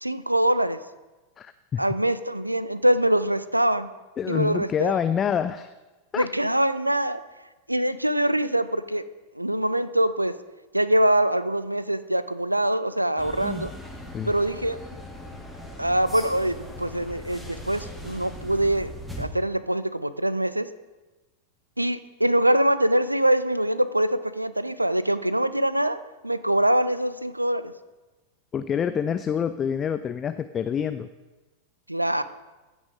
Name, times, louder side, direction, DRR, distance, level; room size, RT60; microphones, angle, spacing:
voice 1, 0.0-0.8 1.8-3.9 4.3-5.0 6.2-7.2 7.7-9.0 9.4-10.3 10.7-13.7 14.2-14.8 15.8-18.9 19.2-20.7 21.8-26.0 26.2-27.7 31.9-32.2, right 1 dB, 85° right, 14 dB, 0.5 m, -24 dB
voice 2, 1.4-1.8 4.2-5.7 6.1-6.3 14.1-14.3 28.5-31.1, left 8 dB, 25° left, 11 dB, 0.4 m, -27 dB
sound 1, 13.2-19.2, equal, ahead, 1.8 m, -39 dB
15.0 x 6.2 x 5.1 m, 1.2 s
figure-of-eight pair, 90°, 0 cm